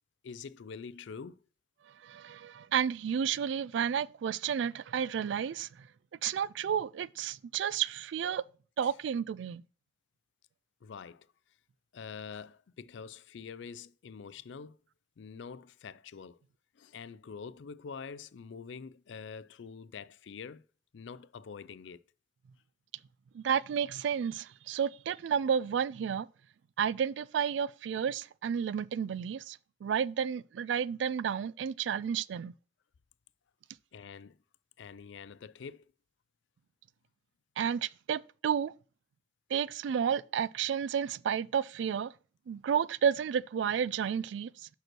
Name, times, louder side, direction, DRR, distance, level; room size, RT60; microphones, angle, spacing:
voice 1, 0.2-1.4 8.8-8.9 10.8-11.3 11.9-14.8 15.2-16.4 16.7-20.6 20.9-22.0 33.9-34.4 34.8-35.8, left 6 dB, 70° left, 0.4 m, -45 dB
voice 2, 2.0-5.7 6.2-8.4 8.8-9.6 23.3-26.3 26.8-32.5 37.6-38.7 39.5-42.1 42.5-44.7, right 8 dB, 70° right, 0.3 m, -31 dB
6.1 x 5.3 x 6.0 m
head